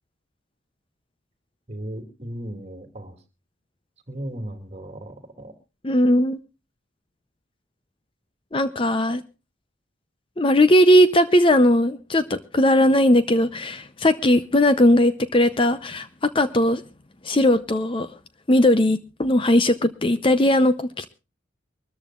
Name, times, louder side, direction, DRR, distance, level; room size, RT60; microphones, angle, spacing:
voice 1, 1.7-3.2 4.1-5.5, right 1 dB, 35° right, 2.4 m, -36 dB
voice 2, 5.8-6.4 8.5-9.2 10.4-16.8 17.2-18.1 18.5-21.1, left 1 dB, 25° left, 0.6 m, -18 dB
24.0 x 13.5 x 2.4 m
head